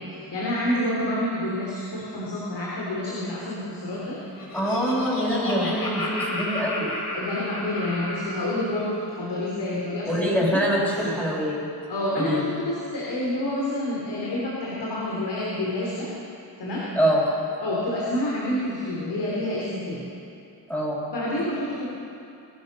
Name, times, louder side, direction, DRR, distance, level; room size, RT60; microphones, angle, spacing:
voice 1, 0.0-4.2 7.1-11.1 11.9-16.1 16.6-16.9 17.6-20.0 21.1-21.8, left 1 dB, 75° left, -5 dB, 3.3 m, -28 dB
Laughter, 4.1-8.5, left 1 dB, 55° left, 3.6 m, -32 dB
voice 2, 4.5-6.9 10.0-11.6 12.1-12.4 16.9-17.2 20.7-21.0, equal, 5° left, -7 dB, 5.1 m, -24 dB
22.0 x 12.0 x 5.4 m, 2.7 s
cardioid pair, 70°, 41 cm